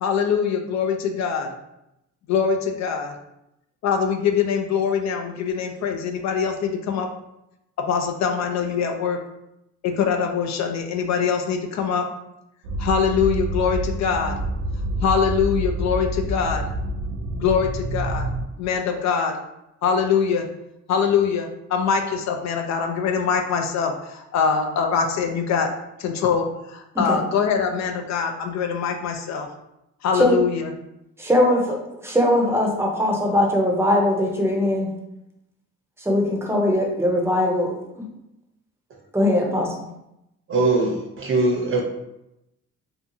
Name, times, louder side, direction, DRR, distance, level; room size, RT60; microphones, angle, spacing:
voice 1, 0.0-1.5 2.3-3.1 3.8-7.1 7.8-9.2 9.8-12.1 12.8-14.4 15.0-16.6 17.3-18.3 18.6-19.3 19.8-20.5 20.9-25.7 26.0-29.5 30.0-30.6, left 6 dB, 65° left, 4 dB, 0.4 m, -23 dB
sound 1, 12.6-18.5, right 1 dB, 85° right, 0.5 m, -27 dB
voice 2, 26.9-27.3 30.1-30.4 31.2-31.8 32.0-34.9 36.0-38.1 39.1-39.7, left 1 dB, 10° right, -1 dB, 0.6 m, -21 dB
voice 3, 40.5-41.8, right 2 dB, 45° right, 0 dB, 0.7 m, -21 dB
2.6 x 2.3 x 2.6 m, 0.86 s
cardioid pair, 90°, 30 cm